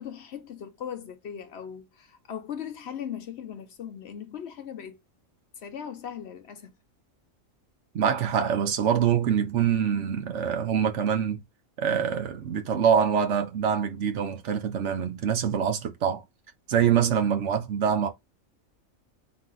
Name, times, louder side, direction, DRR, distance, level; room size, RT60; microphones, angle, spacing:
voice 1, 0.0-5.0 5.6-6.7, left 8 dB, 60° left, 0.8 m, -38 dB
voice 2, 7.9-11.4 11.8-16.2 16.7-18.1, right 8 dB, 65° right, 1.1 m, -25 dB
3.9 x 2.7 x 3.8 m
omnidirectional pair, 1.4 m